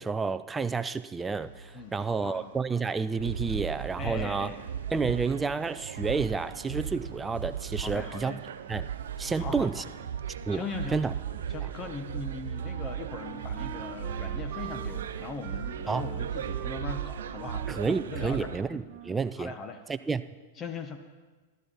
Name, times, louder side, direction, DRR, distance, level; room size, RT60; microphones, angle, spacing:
voice 1, 0.0-4.5 4.9-8.4 8.7-8.9 9.2-9.8 10.5-10.6 10.9-11.1 15.9-16.0 17.7-19.5 19.9-20.2, right 4 dB, 10° right, 12 dB, 0.4 m, -30 dB
sound 1, 1.3-16.7, equal, 60° left, 5.2 m, -56 dB
voice 2, 1.7-2.5 4.0-4.6 7.8-8.4 9.4-9.7 10.5-11.0 11.5-18.8 19.4-19.8 20.6-21.0, left 4 dB, 25° left, 7 dB, 1.1 m, -39 dB
sound 2, 3.2-18.6, right 9 dB, 80° right, 0.6 m, -36 dB
Wind instrument woodwind instrument, 12.5-19.4, right 9 dB, 50° right, 1.0 m, -45 dB
15.0 x 12.0 x 4.1 m, 1.3 s
hypercardioid pair, 125°, 0 cm